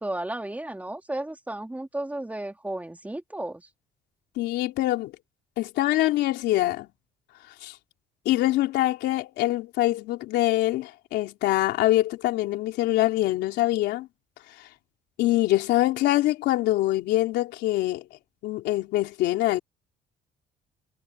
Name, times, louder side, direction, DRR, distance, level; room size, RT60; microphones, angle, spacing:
voice 1, 0.0-3.6, right 1 dB, 10° right, 2.6 m, -33 dB
voice 2, 4.4-5.1 5.6-6.9 7.6-7.7 8.3-14.1 15.2-18.0 18.4-19.6, left 16 dB, 85° left, 3.6 m, -24 dB
cardioid pair, 110°, 17 cm